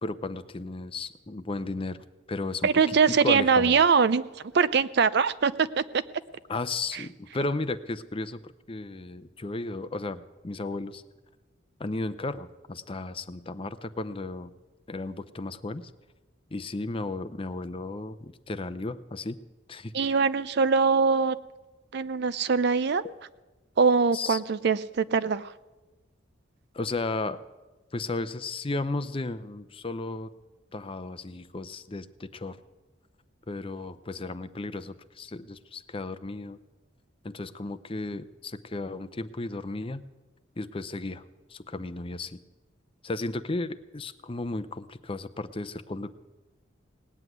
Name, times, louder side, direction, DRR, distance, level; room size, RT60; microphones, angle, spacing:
voice 1, 0.0-2.0 2.3-3.0 3.2-3.8 6.5-11.0 11.8-14.5 14.9-15.8 16.5-19.4 19.7-20.2 23.0-23.1 24.1-24.4 26.7-27.4 27.9-30.3 30.7-32.6 33.5-36.6 37.2-40.0 40.6-41.2 41.5-42.4 43.0-46.1, left 2 dB, 30° left, 12 dB, 0.6 m, -34 dB
voice 2, 2.6-4.2 4.5-6.0 6.9-7.0 19.9-21.4 21.9-23.0 23.8-25.5, right 5 dB, 60° right, 15 dB, 0.5 m, -22 dB
18.5 x 8.0 x 9.3 m, 1.2 s
head